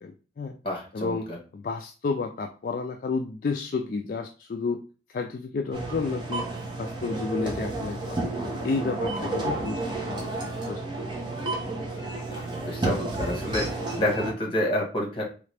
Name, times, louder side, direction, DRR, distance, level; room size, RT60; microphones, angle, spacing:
voice 1, 0.0-0.6 0.9-1.3 1.5-4.8 5.1-6.5 6.8-8.3 8.6-10.8, left 4 dB, 50° left, 5 dB, 0.3 m, -31 dB
voice 2, 0.6-1.4 12.3-15.2, left 1 dB, 30° left, 0 dB, 1.5 m, -29 dB
sound 1, 5.7-14.3, right 2 dB, 25° right, 1.1 m, -31 dB
3.8 x 3.2 x 3.3 m, 0.36 s
head